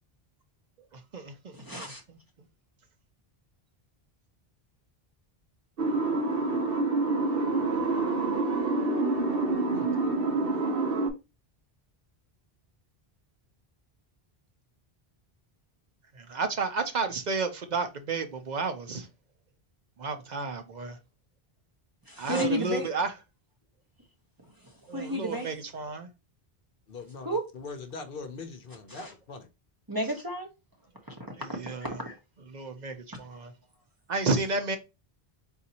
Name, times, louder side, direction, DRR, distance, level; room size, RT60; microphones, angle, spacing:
voice 1, 0.9-1.9 16.1-19.1 20.0-21.0 22.2-23.1 24.9-26.1 31.4-32.0 32.5-33.5 34.1-34.8, right 4 dB, 50° right, 0.7 m, -32 dB
voice 2, 1.5-2.0 22.1-22.9 24.4-25.5 27.2-27.4 28.9-29.1 29.9-30.5 31.1-31.4 31.8-32.2, equal, 20° right, 0.8 m, -33 dB
sound 1, 5.8-11.1, right 3 dB, 65° right, 1.1 m, -27 dB
voice 3, 10.3-10.6 26.9-29.5, left 4 dB, 65° left, 0.9 m, -42 dB
4.0 x 2.7 x 4.1 m
omnidirectional pair, 1.0 m